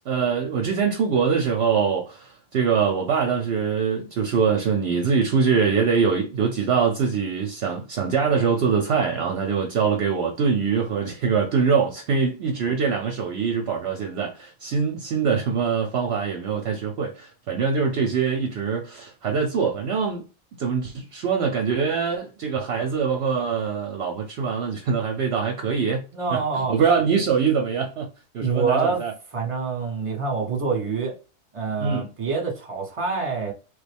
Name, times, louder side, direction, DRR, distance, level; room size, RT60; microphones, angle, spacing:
voice 1, 0.1-20.3 20.6-26.0 26.3-28.1 28.3-29.1 31.8-32.1, right 6 dB, 65° right, 0.8 m, -23 dB
voice 2, 26.1-26.8 28.4-29.0 29.3-31.1 31.5-33.5, right 5 dB, 30° right, 0.9 m, -26 dB
3.3 x 2.2 x 3.3 m
omnidirectional pair, 1.3 m